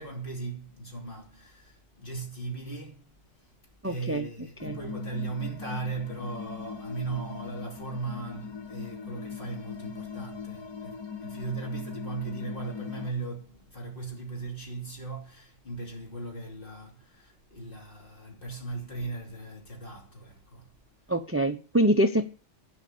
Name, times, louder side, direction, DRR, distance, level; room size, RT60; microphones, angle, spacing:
voice 1, 0.0-3.2 3.8-20.7, right 3 dB, 50° left, 3.1 m, -38 dB
voice 2, 3.8-4.3 4.6-4.8 21.1-22.3, right 1 dB, 15° right, 0.5 m, -25 dB
sound 1, 4.6-13.1, left 6 dB, 30° left, 0.6 m, -40 dB
11.0 x 5.3 x 8.5 m
omnidirectional pair, 1.2 m